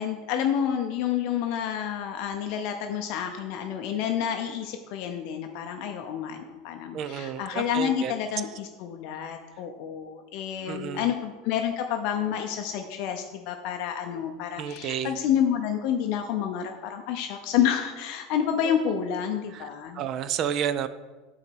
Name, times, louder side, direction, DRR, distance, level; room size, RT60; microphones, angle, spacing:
voice 1, 0.0-20.0, left 9 dB, 50° left, 4 dB, 0.5 m, -29 dB
voice 2, 6.9-8.1 10.7-11.1 14.6-15.1 18.6-18.8 19.5-20.9, right 9 dB, 35° right, 13 dB, 0.3 m, -31 dB
8.8 x 4.0 x 4.5 m, 1.3 s
supercardioid pair, 170°, 0 cm